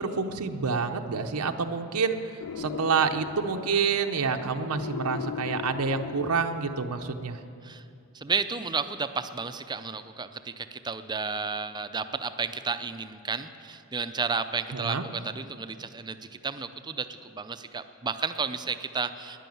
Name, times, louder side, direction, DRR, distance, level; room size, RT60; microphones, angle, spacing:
voice 1, 0.0-7.4 14.7-15.0, right 5 dB, 85° right, 5 dB, 0.8 m, -28 dB
sound 1, 2.4-7.0, left 8 dB, 80° left, 0.4 m, -39 dB
voice 2, 8.1-16.2 16.4-19.4, right 5 dB, 20° right, 10 dB, 0.5 m, -32 dB
12.5 x 10.0 x 9.3 m, 2.6 s
head